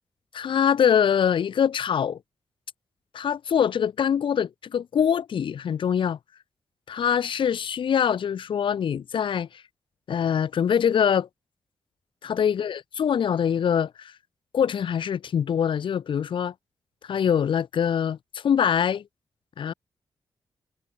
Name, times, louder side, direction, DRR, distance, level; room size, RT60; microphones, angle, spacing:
voice 1, 0.3-2.2 3.1-6.2 6.9-9.5 10.1-11.3 12.3-14.1 14.5-16.5 17.0-19.0 19.6-19.7, left 8 dB, 75° left, 1.2 m, -24 dB
cardioid pair, 70°, 9 cm